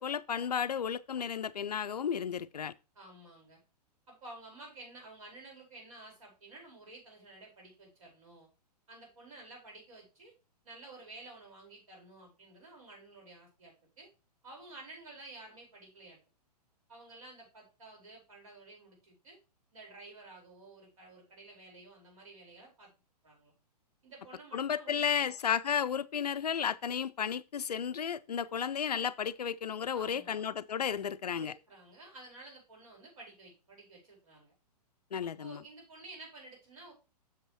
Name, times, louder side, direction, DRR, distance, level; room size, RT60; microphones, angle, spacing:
voice 1, 0.0-2.7 24.5-31.5 35.1-35.6, left 7 dB, 70° left, 0.5 m, -33 dB
voice 2, 2.9-3.6 4.1-8.5 8.9-10.3 10.6-14.1 14.4-16.2 16.9-19.4 19.7-22.9 23.2-23.5 24.0-25.3 29.9-30.5 31.4-34.5 35.2-36.9, right 2 dB, 55° right, 4.7 m, -52 dB
7.8 x 6.6 x 3.0 m
figure-of-eight pair, 115°, 21 cm